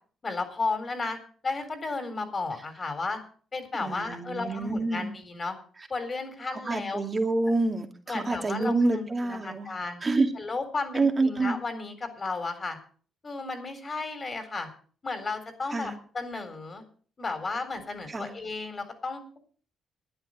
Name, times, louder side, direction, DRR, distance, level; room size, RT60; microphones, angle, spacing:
voice 1, 0.2-1.2 1.4-3.2 3.5-5.6 5.9-7.0 8.1-10.0 10.4-12.8 13.2-14.7 15.0-16.8 17.2-19.4, left 3 dB, 35° left, 8 dB, 3.9 m, -33 dB
voice 2, 3.8-5.1 6.5-9.7 10.0-10.3 10.9-11.6 15.7-15.9 18.1-18.3, right 3 dB, 30° right, 5 dB, 2.3 m, -27 dB
12.0 x 9.9 x 6.5 m, 0.44 s
cardioid pair, 90°, 0 cm